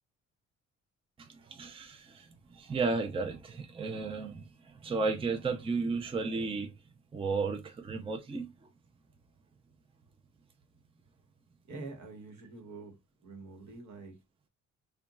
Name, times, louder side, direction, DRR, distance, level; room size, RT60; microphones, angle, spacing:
voice 1, 1.2-6.7 7.1-8.5, right 4 dB, 20° right, 0.5 m, -34 dB
voice 2, 11.7-12.9 13.2-14.2, right 3 dB, 70° right, 1.2 m, -45 dB
2.8 x 2.3 x 2.4 m
cardioid pair, 90°, 30 cm